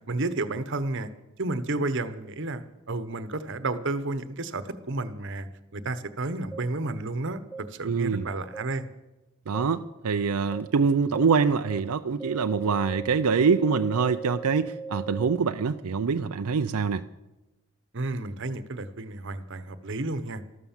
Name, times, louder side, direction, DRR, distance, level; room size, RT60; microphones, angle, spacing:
voice 1, 0.1-1.1 1.4-7.4 7.7-8.8 17.9-20.4, right 2 dB, 55° right, 12 dB, 1.1 m, -31 dB
sound 1, 6.5-6.6 7.5-7.6 8.5-8.6 9.5-9.6 10.5-10.6 11.2-11.3 11.7-11.8 12.2-15.4, right 4 dB, 10° left, 0.9 m, -38 dB
voice 2, 7.8-8.3 9.5-17.1, right 5 dB, 90° right, 9 dB, 0.5 m, -25 dB
13.5 x 13.0 x 7.3 m, 1.0 s
head